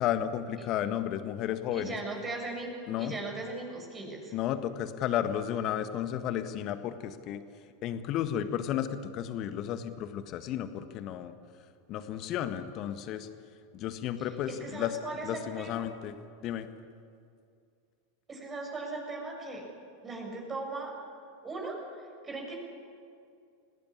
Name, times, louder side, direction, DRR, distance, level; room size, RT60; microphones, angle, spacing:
voice 1, 0.0-1.9 2.9-3.2 4.3-7.4 7.8-11.3 11.9-13.3 13.7-14.9 15.2-16.2 16.4-16.7, left 10 dB, 40° left, 10 dB, 1.6 m, -33 dB
voice 2, 1.7-2.7 3.0-4.3 14.2-15.8 18.3-19.6 20.0-20.9 21.4-22.6, right 3 dB, 20° right, 1 dB, 6.4 m, -38 dB
26.0 x 18.0 x 8.7 m, 2.3 s
figure-of-eight pair, 85°, 0 cm